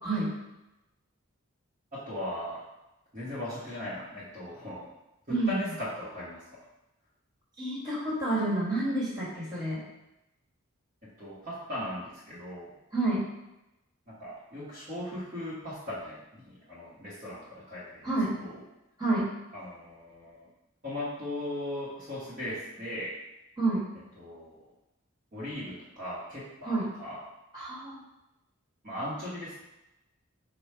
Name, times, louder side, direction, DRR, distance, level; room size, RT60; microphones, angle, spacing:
voice 1, 0.0-0.3 5.3-5.6 7.6-9.8 12.9-13.3 18.0-18.3 19.0-19.3 23.6-23.8 26.6-26.9 27.5-28.0, right 2 dB, 20° right, -8 dB, 1.4 m, -29 dB
voice 2, 1.9-2.6 3.1-4.9 5.3-6.4 11.0-12.7 14.1-18.1 18.4-18.5 19.5-20.5 20.8-23.2 24.2-24.7 25.3-27.2 28.8-29.6, left 1 dB, 35° right, -10 dB, 1.1 m, -38 dB
4.8 x 2.3 x 4.4 m, 0.94 s
head